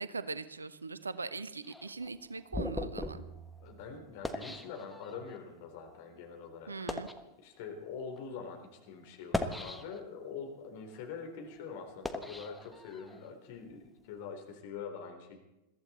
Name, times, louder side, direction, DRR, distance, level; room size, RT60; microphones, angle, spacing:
voice 1, 0.0-3.2 6.7-7.1, right 4 dB, 75° right, 15 dB, 0.8 m, -40 dB
sound 1, 1.6-5.4 6.0-6.2 6.7-7.3 8.0-8.2 9.1-10.2 10.7-13.3, left 1 dB, 5° left, 1.2 m, -39 dB
voice 2, 3.6-6.9 7.4-15.4, left 5 dB, 50° left, 3 dB, 3.6 m, -44 dB
22.0 x 14.0 x 4.3 m, 0.94 s
figure-of-eight pair, 90°, 0 cm